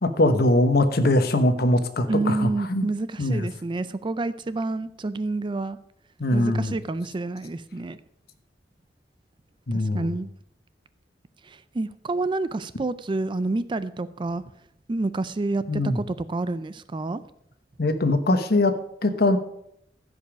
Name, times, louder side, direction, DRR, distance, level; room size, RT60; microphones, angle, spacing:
voice 1, 0.0-2.9 3.2-3.5 6.2-6.7 9.7-10.1 15.7-16.0 17.8-18.7 19.0-19.4, left 1 dB, 60° left, 9 dB, 1.1 m, -21 dB
voice 2, 2.1-5.8 6.3-8.0 9.7-10.3 11.4-14.4 14.9-17.2, right 2 dB, 25° right, 14 dB, 0.4 m, -28 dB
15.0 x 5.4 x 5.1 m, 0.75 s
head